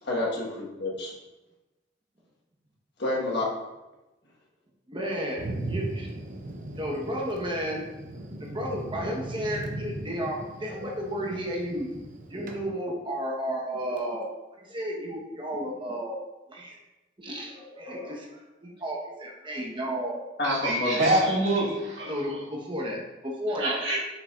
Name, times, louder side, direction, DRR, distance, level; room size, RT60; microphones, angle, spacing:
voice 1, 0.0-1.1 3.0-3.5 20.4-21.1, left 2 dB, 65° left, -3 dB, 1.5 m, -28 dB
voice 2, 4.9-6.1 6.7-7.8 8.4-11.9 12.3-14.3 14.6-16.2 16.5-16.8 17.2-20.3 22.1-23.8, equal, 25° right, -1 dB, 1.2 m, -33 dB
Thunder, 5.4-12.6, right 1 dB, 45° right, 0.8 m, -38 dB
voice 3, 20.4-22.4 23.6-24.0, right 1 dB, 70° right, -5 dB, 2.0 m, -26 dB
6.7 x 5.8 x 2.5 m, 1.0 s
head